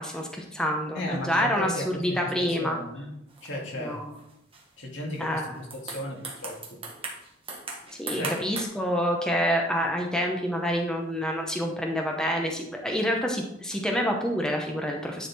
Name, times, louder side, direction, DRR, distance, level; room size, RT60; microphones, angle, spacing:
voice 1, 0.0-2.8 3.8-4.0 5.2-5.6 8.0-15.3, equal, 5° left, 1 dB, 0.9 m, -27 dB
voice 2, 0.9-3.1 3.4-4.0 4.8-6.8 8.1-8.3, left 1 dB, 70° left, -1 dB, 2.1 m, -35 dB
sound 1, 3.3-3.7 4.1-4.6 5.1-5.3 5.6-8.6, right 3 dB, 30° right, 1.5 m, -38 dB
10.0 x 4.1 x 4.2 m, 0.83 s
head